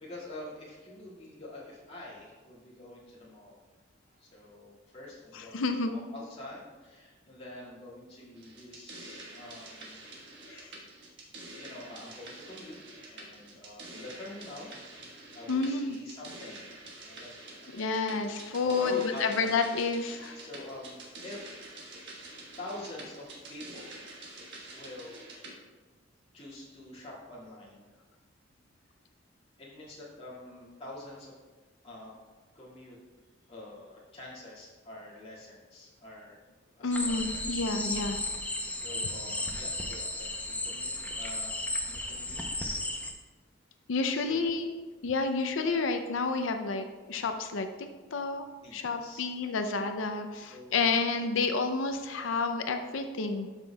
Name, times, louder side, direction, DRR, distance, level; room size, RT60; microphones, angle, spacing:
voice 1, 0.0-3.6 4.0-10.0 10.5-10.7 11.6-12.8 13.1-14.8 15.3-16.7 17.0-17.7 18.6-19.5 20.1-21.0 21.2-22.1 22.6-24.0 24.3-25.3 26.3-28.0 29.6-31.3 31.8-32.1 32.5-33.0 33.4-36.4 36.7-37.4 37.8-38.0 38.3-38.4 38.7-42.4 42.7-43.0 44.1-44.4 48.6-49.3 50.3-50.9, left 1 dB, 30° left, -8 dB, 2.0 m, -46 dB
voice 2, 5.3-5.9 10.5-10.7 15.5-16.0 17.7-20.4 36.8-38.2 43.9-44.8 45.0-47.7 48.1-48.4 48.7-53.5, left 4 dB, 90° left, 7 dB, 0.5 m, -30 dB
sound 1, 8.4-25.6, right 2 dB, 65° right, 1.4 m, -47 dB
sound 2, 36.9-43.1, left 2 dB, 10° left, 0.6 m, -34 dB
12.5 x 5.9 x 2.3 m, 1.3 s
head